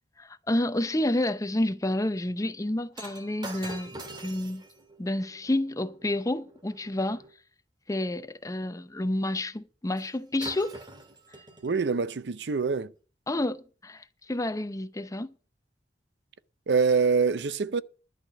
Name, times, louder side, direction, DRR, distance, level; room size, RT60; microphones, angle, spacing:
voice 1, 0.2-4.6 5.0-7.2 7.9-10.8 13.3-15.3, left 1 dB, 20° left, 0.7 m, -29 dB
Shatter, 2.9-7.3 10.0-10.1 10.4-11.9 12.6-12.8, right 2 dB, 25° right, 1.9 m, -45 dB
voice 2, 11.6-12.9 16.7-17.8, right 5 dB, 70° right, 0.6 m, -25 dB
11.5 x 5.8 x 8.8 m
head